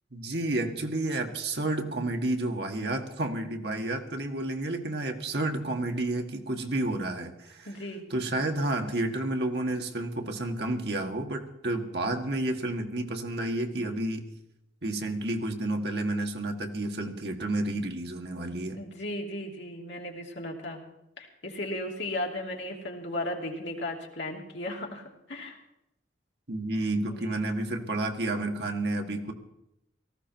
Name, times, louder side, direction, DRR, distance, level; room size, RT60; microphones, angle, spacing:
voice 1, 0.1-7.7 8.1-14.2 14.8-18.8 26.5-29.3, right 2 dB, 55° right, 4 dB, 1.7 m, -30 dB
voice 2, 7.6-8.1 18.7-20.8 21.2-25.6 27.1-27.4, left 1 dB, 65° left, 0 dB, 3.0 m, -36 dB
18.5 x 15.0 x 4.6 m, 0.86 s
head